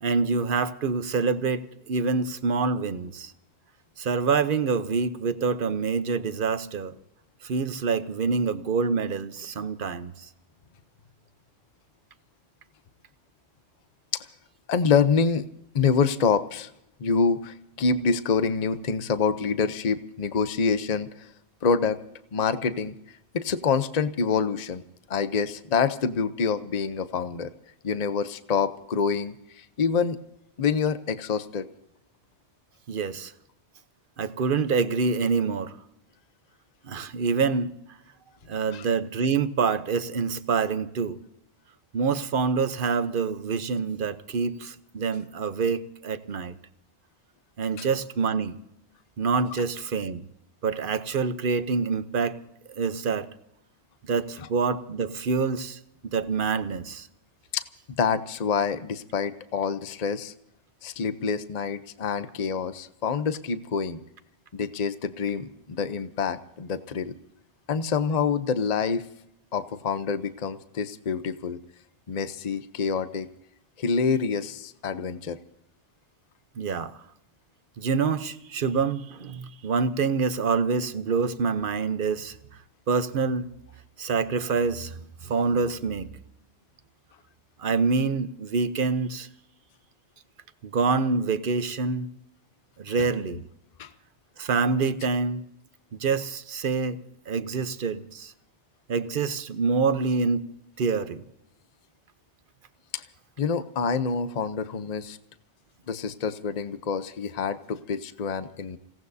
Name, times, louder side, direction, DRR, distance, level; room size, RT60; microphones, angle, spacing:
voice 1, 0.0-3.3 4.0-6.9 7.4-10.3 32.9-33.3 34.2-35.7 36.8-37.7 38.5-41.2 41.9-46.5 47.6-48.6 49.2-50.2 50.6-52.4 52.8-53.3 54.0-57.1 76.6-77.0 77.8-82.4 82.9-83.5 84.0-86.1 87.6-89.3 90.6-92.1 92.8-93.4 94.4-95.4 95.9-97.0 97.3-98.3 98.9-100.5 100.8-101.2, right 5 dB, 55° right, 12 dB, 1.0 m, -26 dB
voice 2, 14.7-15.4 15.7-16.7 17.0-21.3 21.6-22.0 22.3-22.9 23.3-24.8 25.1-27.5 27.8-30.2 30.6-31.7 38.7-38.8 47.8-47.9 54.4-54.5 57.5-60.3 60.8-64.0 64.5-67.1 67.7-69.1 69.5-71.6 72.1-73.3 73.8-75.4 93.8-93.9 102.9-103.0 103.4-105.2 105.9-108.8, left 5 dB, 40° left, 12 dB, 0.8 m, -26 dB
29.0 x 17.5 x 2.7 m, 0.77 s
omnidirectional pair, 1.1 m